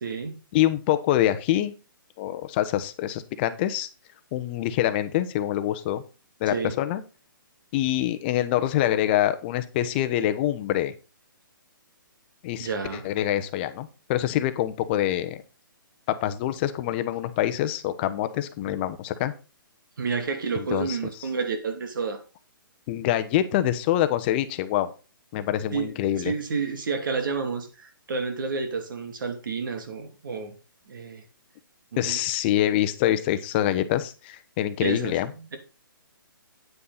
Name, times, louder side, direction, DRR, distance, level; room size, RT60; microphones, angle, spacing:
voice 1, 0.0-0.4 6.5-6.7 12.6-13.1 20.0-22.2 25.7-30.5 30.9-31.2 31.9-32.2 34.8-35.6, right 5 dB, 65° right, 6 dB, 2.8 m, -30 dB
voice 2, 0.5-1.7 2.2-3.9 4.3-6.0 6.4-7.0 7.7-10.9 12.4-12.7 13.0-15.4 16.1-19.3 20.5-21.0 22.9-24.9 25.3-26.3 32.0-35.3, left 12 dB, 30° left, 11 dB, 1.0 m, -25 dB
9.4 x 8.6 x 4.1 m, 0.31 s
hypercardioid pair, 155°, 12 cm